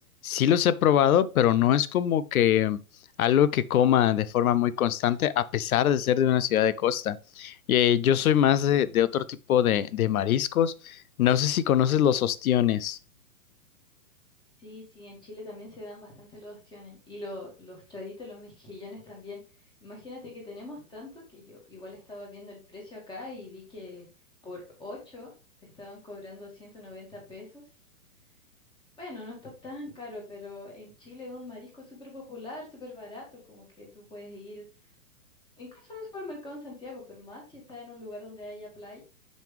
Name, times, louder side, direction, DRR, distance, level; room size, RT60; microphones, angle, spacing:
voice 1, 0.2-2.8 3.2-9.2 9.5-13.0, left 10 dB, 75° left, 0.7 m, -23 dB
voice 2, 14.6-24.1 24.4-25.3 25.6-27.6 29.0-34.6 35.6-39.0, left 2 dB, 10° left, 2.0 m, -43 dB
6.3 x 5.3 x 3.3 m
hypercardioid pair, 160°, 43 cm